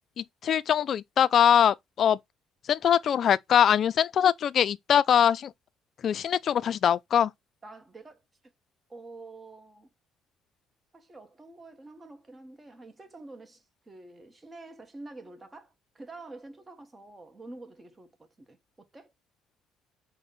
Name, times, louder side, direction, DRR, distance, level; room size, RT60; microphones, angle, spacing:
voice 1, 0.2-2.2 2.6-5.5 6.0-7.3, left 9 dB, 55° left, 0.3 m, -23 dB
voice 2, 7.6-8.2 8.9-9.9 10.9-19.1, right 2 dB, 20° right, 0.9 m, -47 dB
5.1 x 2.1 x 3.9 m
cardioid pair, 90°, 0 cm